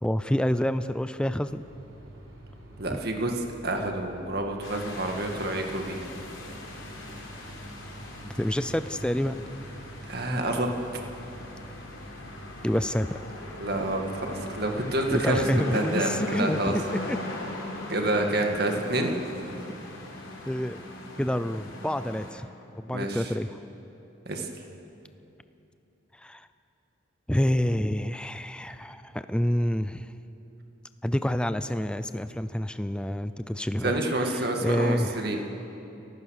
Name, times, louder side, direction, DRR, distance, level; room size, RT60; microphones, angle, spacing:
voice 1, 0.0-1.6 2.9-3.0 8.2-9.4 12.6-13.1 15.1-17.2 20.5-20.8 21.2-22.5 22.8-23.6 26.2-26.5 27.3-30.1 31.0-35.4, equal, 5° left, 11 dB, 0.4 m, -28 dB
sound 1, 1.4-15.1, right 1 dB, 85° right, 4.8 m, -47 dB
voice 2, 2.8-3.3 3.6-6.0 10.1-10.7 13.6-15.4 15.7-16.7 17.9-19.1 22.9-23.2 24.3-24.5 33.8-35.4, right 1 dB, 50° right, 3 dB, 2.1 m, -28 dB
sound 2, 4.6-22.3, left 2 dB, 75° left, 3.9 m, -39 dB
29.0 x 15.0 x 6.6 m, 2.9 s
head